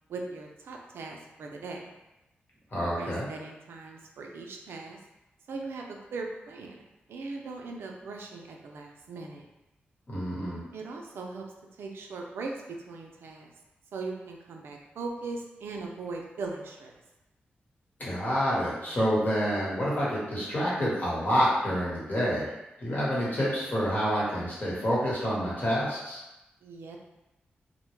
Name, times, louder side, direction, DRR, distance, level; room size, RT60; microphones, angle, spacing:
voice 1, 0.1-1.8 3.0-5.0 5.5-6.8 7.1-9.5 10.7-11.5 11.8-13.5 13.9-16.9 26.6-27.0, right 3 dB, 80° right, 1 dB, 0.4 m, -39 dB
voice 2, 2.7-3.3 10.1-10.6 18.0-22.5 22.8-26.2, equal, 50° left, -7 dB, 1.1 m, -28 dB
2.1 x 2.1 x 3.0 m, 0.98 s
cardioid pair, 60°, 4 cm